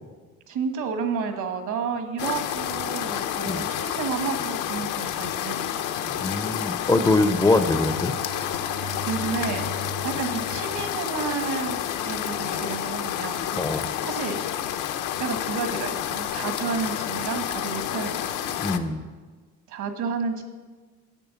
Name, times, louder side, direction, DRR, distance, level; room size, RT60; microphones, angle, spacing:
voice 1, 0.5-6.3 9.1-13.5 13.7-14.7 15.2-18.6 19.7-20.4, right 5 dB, 70° right, 7 dB, 1.6 m, -31 dB
sound 1, 2.2-18.8, left 10 dB, 80° left, 0.8 m, -29 dB
voice 2, 6.2-8.1 13.5-13.9 18.6-19.0, left 2 dB, 10° left, 8 dB, 0.5 m, -23 dB
Bowed string instrument, 7.2-11.7, right 1 dB, 90° right, 3.1 m, -39 dB
11.0 x 8.5 x 7.0 m, 1.4 s
cardioid pair, 155°, 31 cm